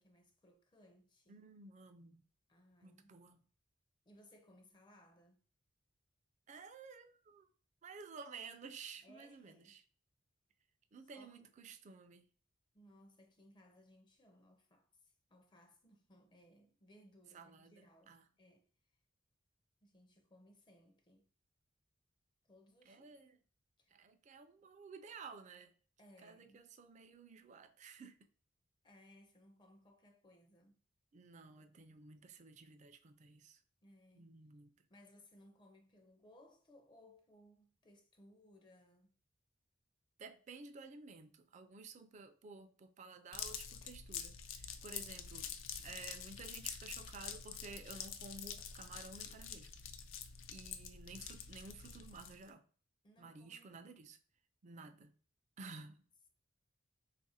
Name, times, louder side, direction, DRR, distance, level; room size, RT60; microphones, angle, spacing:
voice 1, 0.0-1.4 2.5-3.2 4.1-5.4 9.0-9.8 11.1-11.5 12.7-18.7 19.8-21.3 22.5-23.1 23.8-24.0 26.0-26.7 28.8-30.8 33.8-34.4 34.9-39.1 53.0-53.9 55.6-55.9, left 1 dB, 25° left, 0.4 m, -64 dB
voice 2, 1.3-2.2 2.8-3.4 6.5-7.5 7.8-9.8 10.9-12.2 17.3-18.2 22.9-23.4 23.9-25.7 26.2-28.2 31.1-33.6 34.2-34.7 40.2-45.5 45.8-49.7 50.5-52.6 53.2-54.2 54.6-55.1 55.6-56.0, right 4 dB, 35° right, 0.4 m, -53 dB
sound 1, 43.3-52.5, left 8 dB, 85° left, 0.4 m, -47 dB
3.2 x 2.4 x 4.1 m
head